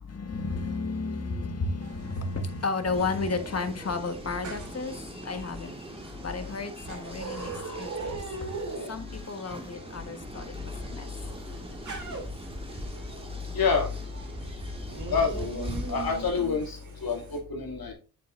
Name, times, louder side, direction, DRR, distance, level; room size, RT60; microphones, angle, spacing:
voice 1, 0.0-8.6 8.9-11.1, left 3 dB, 40° left, 1.4 m, -33 dB
sound 1, 1.8-17.4, right 3 dB, 45° right, 3.2 m, -42 dB
sound 2, 2.9-16.4, equal, 15° right, 1.9 m, -41 dB
voice 2, 13.5-13.9 15.1-17.9, left 5 dB, 60° left, 2.8 m, -28 dB
8.7 x 6.6 x 2.6 m
cardioid pair, 65°, 40 cm